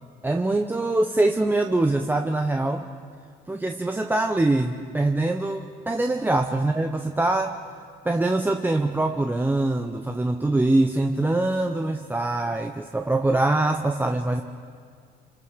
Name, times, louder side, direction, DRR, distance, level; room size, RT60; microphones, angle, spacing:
voice 1, 0.2-2.9 3.5-7.6 8.0-14.4, right 2 dB, 10° right, 4 dB, 0.9 m, -23 dB
27.5 x 26.5 x 5.2 m, 2.1 s
cardioid pair, 110°, 17 cm